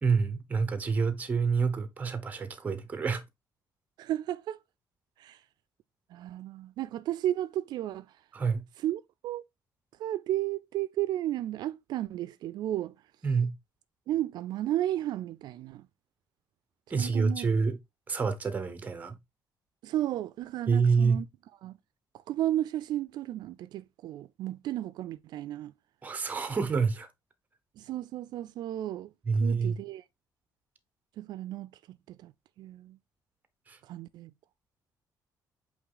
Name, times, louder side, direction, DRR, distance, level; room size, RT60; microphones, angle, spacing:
voice 1, 0.0-3.2 8.3-8.6 13.2-13.6 16.9-17.8 18.1-19.2 20.7-21.2 26.0-27.1 29.3-29.8 33.7-33.8, right 5 dB, 20° right, 0.9 m, -27 dB
voice 2, 4.0-4.6 5.2-5.4 6.1-8.1 8.8-9.4 10.0-12.9 14.1-15.9 17.0-17.5 19.8-21.2 21.6-21.8 22.1-25.7 27.8-29.1 29.4-30.0 31.2-32.3 32.6-33.0 33.8-34.3, right 13 dB, 75° right, 0.3 m, -33 dB
8.3 x 3.1 x 3.8 m
cardioid pair, 175°, 7 cm